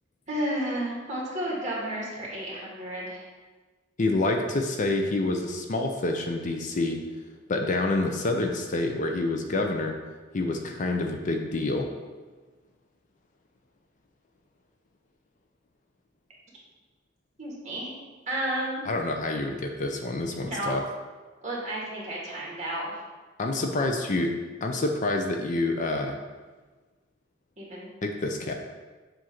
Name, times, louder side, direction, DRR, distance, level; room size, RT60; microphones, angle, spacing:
voice 1, 0.3-3.3 17.4-18.0 18.3-18.8 20.4-20.7 21.4-22.9 27.6-27.9, right 1 dB, 35° right, -4 dB, 1.8 m, -32 dB
voice 2, 4.0-7.0 7.5-9.9 10.3-11.9 18.9-20.8 23.4-24.3 24.6-26.2 28.0-28.5, left 2 dB, 40° left, 3 dB, 0.5 m, -27 dB
7.4 x 2.6 x 5.8 m, 1.3 s
head